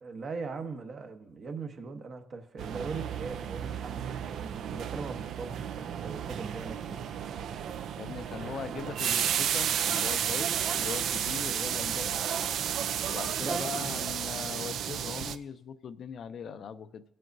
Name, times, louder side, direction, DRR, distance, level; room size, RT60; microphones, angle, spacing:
voice 1, 0.0-7.0 13.4-13.9, right 4 dB, 50° right, 1.0 m, -40 dB
sound 1, 2.6-15.4, right 9 dB, 75° right, 0.4 m, -32 dB
voice 2, 8.0-12.2 13.1-17.0, left 7 dB, 60° left, 0.5 m, -40 dB
17.0 x 7.6 x 2.6 m
cardioid pair, 90°, 0 cm